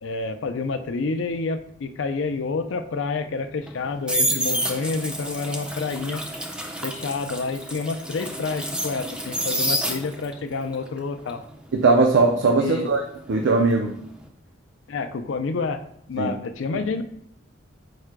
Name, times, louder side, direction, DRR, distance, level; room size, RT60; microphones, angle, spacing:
voice 1, 0.0-6.2 6.8-11.4 12.6-12.9 14.9-15.8 16.1-17.0, left 4 dB, 80° left, 9 dB, 0.4 m, -28 dB
sound 1, 3.6-10.4 10.7-13.6 13.9-14.2, equal, 5° right, 0.4 m, -29 dB
voice 2, 11.7-13.0 13.3-13.9 16.2-16.3, right 3 dB, 70° right, 2 dB, 0.5 m, -19 dB
4.7 x 2.2 x 4.6 m, 0.70 s
head